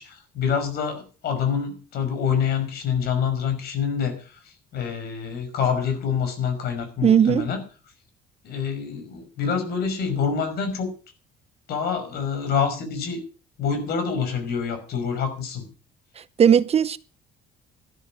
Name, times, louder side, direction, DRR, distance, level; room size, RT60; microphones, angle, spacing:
voice 1, 0.0-7.6 8.4-10.9 11.7-13.2 13.6-15.7, left 6 dB, 70° left, 5.6 m, -26 dB
voice 2, 7.0-7.5 16.4-17.0, right 8 dB, 35° right, 0.8 m, -17 dB
13.0 x 12.5 x 5.9 m
cardioid pair, 110°, 17 cm